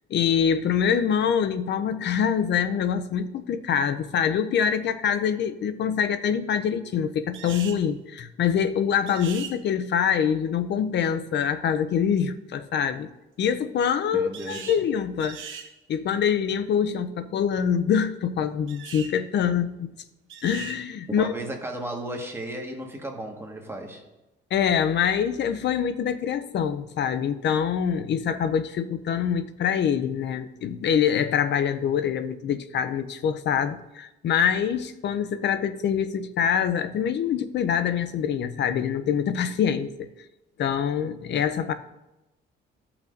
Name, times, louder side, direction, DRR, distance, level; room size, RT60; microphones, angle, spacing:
voice 1, 0.1-13.1 13.4-15.4 15.9-19.9 20.4-21.3 24.5-40.1 40.6-41.7, left 8 dB, 60° left, 11 dB, 0.6 m, -25 dB
sound 1, 7.3-7.8 9.1-9.5 14.3-14.8 15.2-15.7 18.7-19.1 20.3-20.8, right 8 dB, 80° right, 0.9 m, -39 dB
voice 2, 14.1-14.8 21.1-24.0, right 1 dB, 10° right, 1 dB, 1.7 m, -34 dB
15.0 x 5.8 x 2.6 m, 0.97 s
cardioid pair, 90°, 20 cm